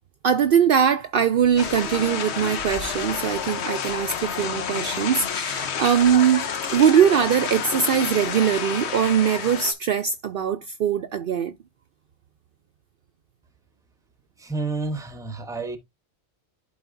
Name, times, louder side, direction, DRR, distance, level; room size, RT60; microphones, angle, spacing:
voice 1, 0.2-11.5, right 8 dB, 60° right, 0.6 m, -21 dB
sound 1, 1.6-9.7, left 7 dB, 75° left, 1.1 m, -29 dB
voice 2, 14.4-15.8, right 3 dB, 5° right, 0.8 m, -30 dB
11.0 x 3.8 x 2.5 m
omnidirectional pair, 1.2 m